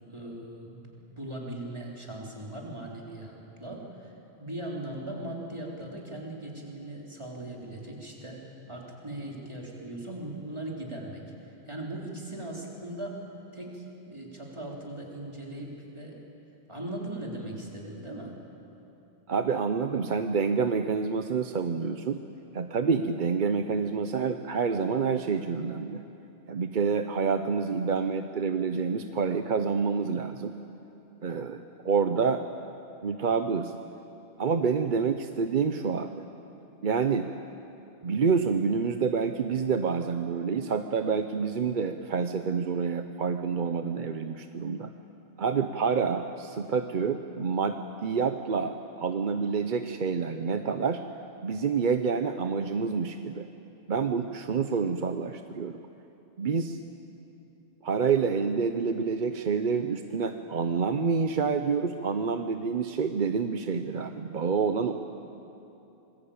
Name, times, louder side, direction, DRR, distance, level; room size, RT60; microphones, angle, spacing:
voice 1, 0.1-3.3 3.6-4.1 4.4-8.4 8.7-11.2 11.7-13.2 13.5-16.2 16.7-18.3, right 1 dB, 25° right, -2 dB, 3.9 m, -39 dB
voice 2, 19.3-22.2 22.5-26.0 26.5-30.5 31.2-32.5 33.0-33.7 34.4-36.3 36.8-37.3 38.0-44.9 45.4-51.0 51.4-53.5 53.9-55.8 56.4-56.8 57.8-64.9, right 5 dB, 50° right, 7 dB, 0.9 m, -28 dB
26.0 x 21.0 x 8.7 m, 3.0 s
omnidirectional pair, 1.1 m